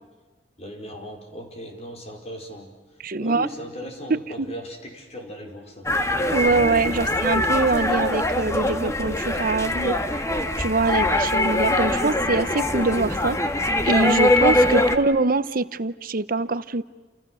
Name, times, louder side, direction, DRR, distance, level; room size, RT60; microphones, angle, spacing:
voice 1, 0.6-6.0 7.0-7.1, equal, 40° left, 3 dB, 5.0 m, -38 dB
voice 2, 3.0-3.5 4.1-4.2 6.3-10.0 10.6-13.4 13.8-16.8, right 3 dB, 55° right, 14 dB, 0.9 m, -23 dB
sound 1, 5.9-15.0, left 1 dB, 15° left, 1.6 m, -22 dB
30.0 x 28.5 x 6.4 m, 1.3 s
head